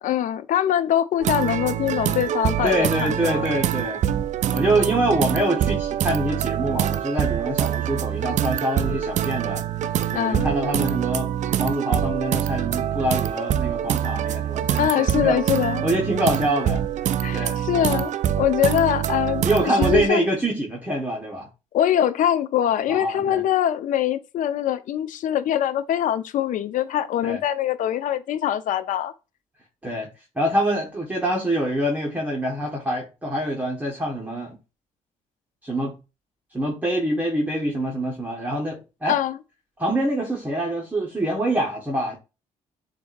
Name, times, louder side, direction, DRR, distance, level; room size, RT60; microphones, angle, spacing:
voice 1, 0.0-3.4 10.1-10.5 14.8-15.8 17.2-20.3 21.7-29.1 39.0-39.4, left 11 dB, 65° left, 0.5 m, -23 dB
sound 1, 1.2-20.1, right 10 dB, 55° right, 0.4 m, -25 dB
voice 2, 2.6-4.0 4.5-9.6 10.1-11.3 11.6-15.4 15.8-16.8 17.3-17.6 19.4-21.5 22.9-23.4 27.2-27.4 29.8-30.1 30.3-34.6 35.6-36.0 36.5-39.2 39.8-42.1, right 1 dB, 10° right, 1.5 m, -25 dB
7.0 x 2.7 x 2.5 m
supercardioid pair, 70°, 15 cm